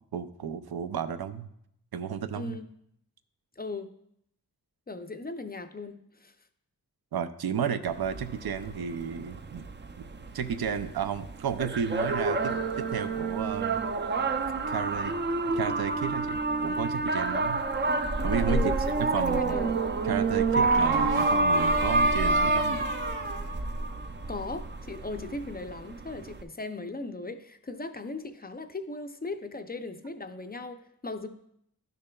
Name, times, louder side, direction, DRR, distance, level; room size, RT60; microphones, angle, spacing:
voice 1, 0.1-1.5 1.9-2.6 7.1-9.6 10.0-10.1 10.3-13.8 14.7-15.1 15.6-17.6 18.2-18.6 19.1-19.6 20.0-22.8, right 7 dB, 80° right, 10 dB, 0.5 m, -32 dB
voice 2, 2.3-2.7 3.6-3.9 4.9-6.3 18.5-19.8 24.3-31.3, left 2 dB, 25° left, 8 dB, 0.4 m, -37 dB
sound 1, 7.9-26.4, right 3 dB, 30° right, 0.4 m, -28 dB
sound 2, 17.9-18.7 20.6-24.2, right 1 dB, 55° right, 1.2 m, -37 dB
11.5 x 6.7 x 2.2 m, 0.73 s
wide cardioid pair, 105°, 37 cm